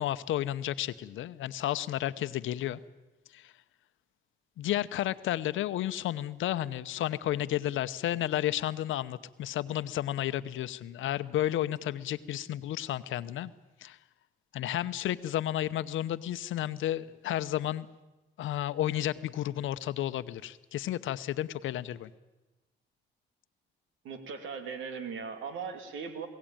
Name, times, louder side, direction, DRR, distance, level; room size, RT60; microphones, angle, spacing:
voice 1, 0.0-2.8 3.3-3.5 4.6-13.5 13.8-14.0 14.5-17.9 18.4-22.1, left 13 dB, 80° left, 13 dB, 0.9 m, -32 dB
voice 2, 24.0-26.3, right 6 dB, 90° right, 7 dB, 2.6 m, -38 dB
22.0 x 17.5 x 8.9 m, 1.1 s
cardioid pair, 90°, 20 cm